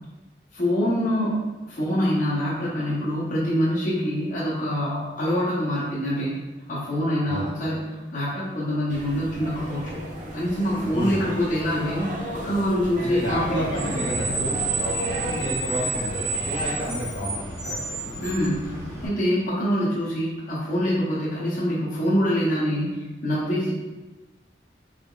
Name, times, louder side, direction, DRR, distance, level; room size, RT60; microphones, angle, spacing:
voice 1, 0.5-6.4 6.7-7.8 8.1-10.0 10.3-13.7 18.2-23.7, equal, 45° left, -9 dB, 0.7 m, -25 dB
sound 1, 8.9-16.8, right 1 dB, 40° right, 0.5 m, -35 dB
voice 2, 10.9-11.2 13.0-17.8, equal, 85° left, -4 dB, 1.4 m, -31 dB
Screech, 13.3-19.1, right 2 dB, 15° right, 0.9 m, -30 dB
3.6 x 3.4 x 2.3 m, 1.2 s
head